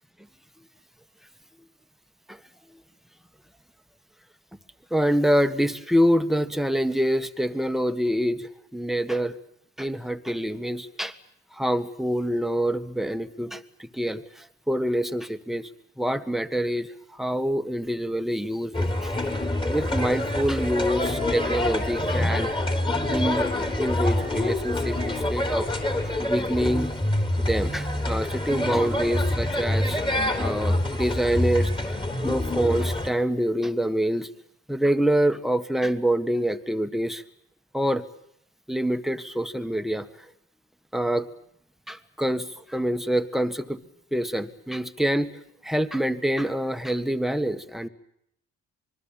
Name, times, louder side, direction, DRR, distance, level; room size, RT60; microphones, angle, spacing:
voice 1, 4.9-9.4 9.8-11.1 11.5-15.7 16.0-19.1 19.7-22.5 23.1-25.7 26.2-26.9 27.4-30.0 30.4-31.7 32.2-34.3 34.7-37.2 37.7-38.0 38.7-40.1 40.9-41.3 41.9-43.8 44.1-45.3 45.6-47.9, equal, ahead, 9 dB, 1.7 m, -26 dB
sound 1, 18.7-33.1, left 1 dB, 15° left, 4.1 m, -26 dB
26.0 x 21.5 x 9.0 m, 0.73 s
cardioid pair, 90°, 30 cm